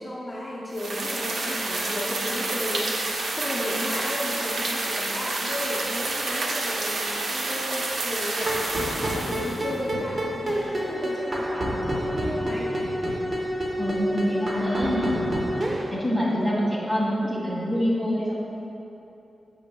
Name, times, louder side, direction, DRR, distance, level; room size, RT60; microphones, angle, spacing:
voice 1, 0.0-12.8 15.8-16.3, left 1 dB, 15° left, -7 dB, 0.9 m, -34 dB
sound 1, 0.7-9.8, right 2 dB, 80° right, 0.8 m, -29 dB
sound 2, 8.4-15.9, equal, 40° right, 0.9 m, -28 dB
voice 2, 13.8-15.3 15.9-18.3, equal, 15° right, -6 dB, 1.7 m, -25 dB
10.5 x 7.1 x 2.3 m, 2.9 s
wide cardioid pair, 130°, 0 cm